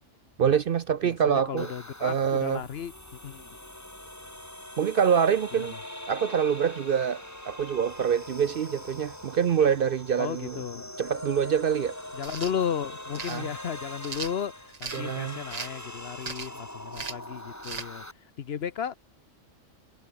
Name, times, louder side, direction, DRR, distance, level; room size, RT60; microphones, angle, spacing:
voice 1, 0.4-1.7 2.0-2.6 4.8-5.7 6.1-10.6 11.0-12.0 13.3-13.5 14.9-15.4, right 7 dB, 55° right, 0.7 m, -25 dB
voice 2, 1.0-2.9 3.2-3.6 5.7-5.8 10.2-10.9 12.1-18.0 18.4-18.9, left 8 dB, 55° left, 1.0 m, -34 dB
sound 1, 1.6-18.1, left 1 dB, 10° left, 2.7 m, -42 dB
sound 2, 12.2-12.5 13.1-13.4 14.0-15.0 15.5-15.8 16.2-16.6 16.9-17.3 17.6-17.9, right 5 dB, 35° right, 1.1 m, -37 dB
omnidirectional pair, 1.3 m